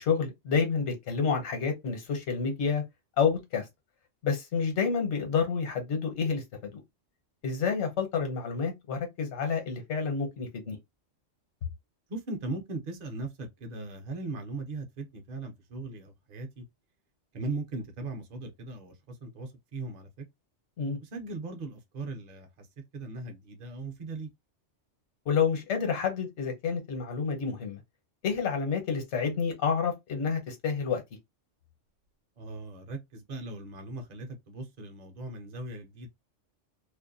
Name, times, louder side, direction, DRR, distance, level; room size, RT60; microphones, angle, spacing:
voice 1, 0.0-2.8 3.2-3.6 4.2-6.8 7.4-10.8 20.8-21.0 25.3-27.8 28.2-31.0, left 6 dB, 70° left, 1.1 m, -29 dB
voice 2, 12.1-16.6 17.3-18.9 19.2-20.2 21.1-22.7 22.9-24.3 32.4-36.1, right 2 dB, 45° right, 0.7 m, -38 dB
2.5 x 2.1 x 2.5 m
omnidirectional pair, 1.3 m